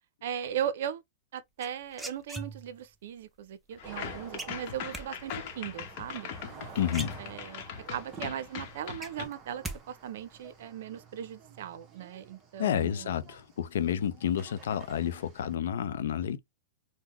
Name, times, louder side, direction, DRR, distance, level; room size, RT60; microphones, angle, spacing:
voice 1, 0.2-1.0 1.3-6.3 7.2-13.1, right 9 dB, 70° right, 0.5 m, -38 dB
sound 1, 1.6-2.9 4.4-5.1 6.5-6.6 6.9-7.7 8.1-8.2 8.5-9.8 10.0-10.5, right 2 dB, 5° right, 0.6 m, -40 dB
sound 2, 3.8-9.3, left 8 dB, 50° left, 0.8 m, -41 dB
sound 3, 3.8-15.5, right 5 dB, 25° right, 0.9 m, -50 dB
voice 2, 6.8-7.2 7.5-7.6 12.6-16.4, left 9 dB, 75° left, 0.5 m, -30 dB
3.7 x 2.1 x 2.9 m
hypercardioid pair, 130°, 0 cm